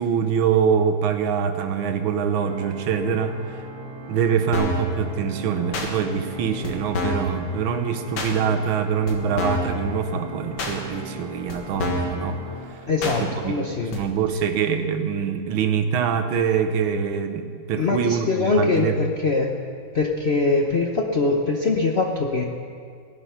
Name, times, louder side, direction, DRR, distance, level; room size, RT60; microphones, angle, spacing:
voice 1, 0.0-3.7 4.1-13.5 13.8-19.0, right 7 dB, 75° right, 8 dB, 1.7 m, -24 dB
Organ, 2.3-13.5, right 2 dB, 35° right, 2.7 m, -39 dB
sound 1, 4.5-4.9 5.7-5.9 6.6-6.7 6.9-7.3 8.2-8.3 9.1-9.2 9.4-9.7 10.6-10.7 11.5-11.6 11.8-12.1 13.0-13.2 13.9-14.0, left 2 dB, 65° left, 2.3 m, -26 dB
voice 2, 12.9-14.0 17.8-19.5 19.9-22.5, left 3 dB, 50° left, 0 dB, 0.8 m, -22 dB
17.5 x 11.0 x 5.7 m, 2.3 s
omnidirectional pair, 2.3 m